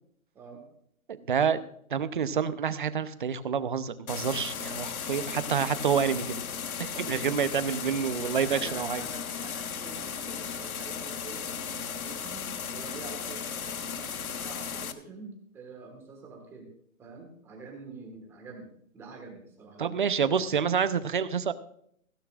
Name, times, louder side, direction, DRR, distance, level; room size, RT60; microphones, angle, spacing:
voice 1, 1.1-6.4 6.8-9.0 19.8-21.5, right 7 dB, 35° right, 13 dB, 0.7 m, -28 dB
sound 1, 4.1-14.9, left 7 dB, 80° left, 1.4 m, -36 dB
voice 2, 7.1-7.4 7.8-7.9 8.3-16.7 17.0-20.4, right 4 dB, 5° right, 1 dB, 1.5 m, -46 dB
16.0 x 15.0 x 2.4 m, 0.67 s
hypercardioid pair, 175°, 42 cm